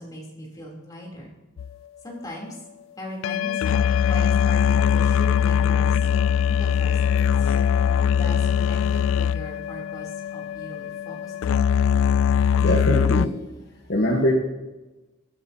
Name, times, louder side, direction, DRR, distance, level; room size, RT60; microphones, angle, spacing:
voice 1, 0.0-1.3 2.0-2.6 3.0-6.0 6.4-7.5 8.1-11.6, equal, 20° left, -3 dB, 3.4 m, -39 dB
sound 1, 1.6-1.7 3.2-13.3, left 7 dB, 80° left, 0.3 m, -21 dB
voice 2, 12.6-13.3 13.9-14.3, equal, 55° left, 1 dB, 1.3 m, -21 dB
22.0 x 11.0 x 2.9 m, 1.1 s
head